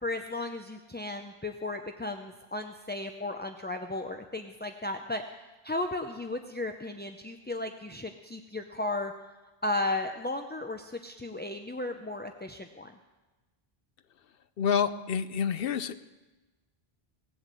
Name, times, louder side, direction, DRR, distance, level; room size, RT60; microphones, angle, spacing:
voice 1, 0.0-9.1 9.6-13.0, left 2 dB, 15° left, 5 dB, 0.4 m, -35 dB
voice 2, 14.6-16.0, left 7 dB, 65° left, 13 dB, 0.8 m, -28 dB
18.0 x 7.9 x 7.5 m, 1.2 s
omnidirectional pair, 1.0 m